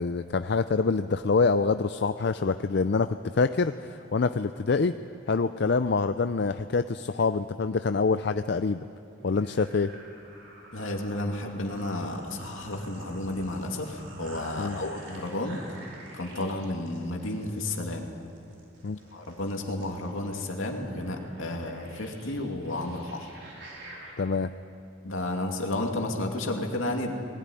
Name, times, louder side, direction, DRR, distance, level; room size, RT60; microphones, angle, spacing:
voice 1, 0.0-3.1 3.3-4.9 5.3-8.8 9.2-9.9 14.6-14.8 18.8-19.0 24.2-24.5, left 4 dB, 55° left, 10 dB, 0.5 m, -25 dB
sound 1, 9.2-24.1, right 1 dB, 60° right, 5.1 m, -48 dB
voice 2, 10.7-15.6 16.1-18.1 19.1-23.3 25.0-27.1, left 1 dB, 75° left, 2 dB, 2.6 m, -32 dB
20.0 x 17.0 x 9.9 m, 2.6 s
head